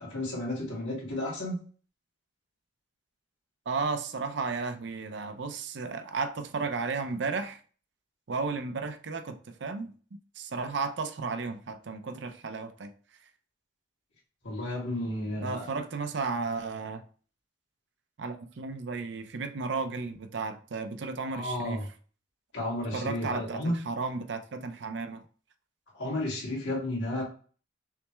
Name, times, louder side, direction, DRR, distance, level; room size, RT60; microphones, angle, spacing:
voice 1, 0.0-1.6 14.4-15.6 21.3-21.8 22.5-23.8 25.9-27.2, left 1 dB, 75° left, 2.1 m, -32 dB
voice 2, 3.7-7.6 8.3-9.9 10.4-12.9 15.4-17.0 18.2-21.9 22.9-25.2, right 4 dB, 60° right, 0.5 m, -34 dB
5.8 x 2.1 x 3.3 m
head